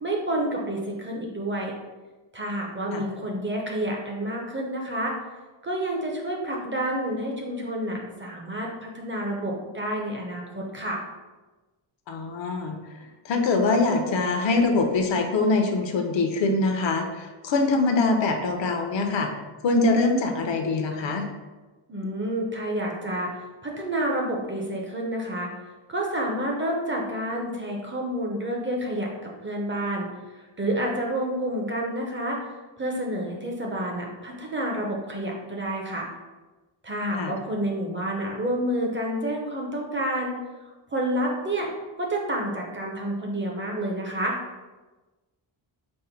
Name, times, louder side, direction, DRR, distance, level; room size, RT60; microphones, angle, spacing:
voice 1, 0.0-1.7 2.3-5.2 5.6-11.0 21.9-23.3 23.6-25.5 25.9-30.1 30.6-32.4 32.8-36.1 36.8-40.4 40.9-41.7 42.0-44.4, right 1 dB, 25° right, -1 dB, 0.5 m, -29 dB
voice 2, 12.1-12.8 13.2-19.3 19.6-21.3 37.1-37.3, left 3 dB, 65° left, 4 dB, 0.7 m, -23 dB
5.3 x 2.1 x 4.4 m, 1.2 s
wide cardioid pair, 155°, 48 cm